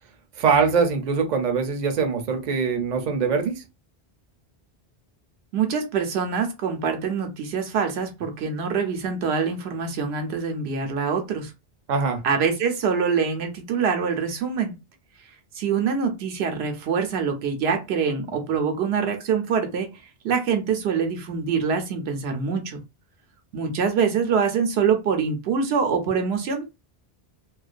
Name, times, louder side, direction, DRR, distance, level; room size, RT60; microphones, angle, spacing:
voice 1, 0.4-3.6 11.9-12.2, right 5 dB, 55° right, 0.6 m, -22 dB
voice 2, 5.5-11.5 12.2-14.7 15.5-19.9 20.2-22.8 23.5-26.6, right 6 dB, 85° right, 0.9 m, -24 dB
2.4 x 2.2 x 2.4 m
omnidirectional pair, 1.0 m